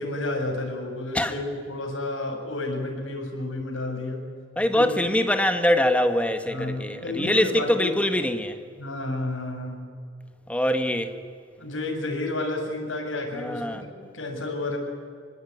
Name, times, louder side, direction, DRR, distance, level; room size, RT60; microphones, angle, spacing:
voice 1, 0.0-4.3 4.7-4.9 6.5-7.9 8.8-9.9 11.6-14.8, left 2 dB, 85° left, 6.8 m, -31 dB
voice 2, 4.6-8.6 10.5-11.2 13.3-13.8, left 1 dB, 5° left, 1.7 m, -23 dB
25.5 x 24.5 x 9.6 m
head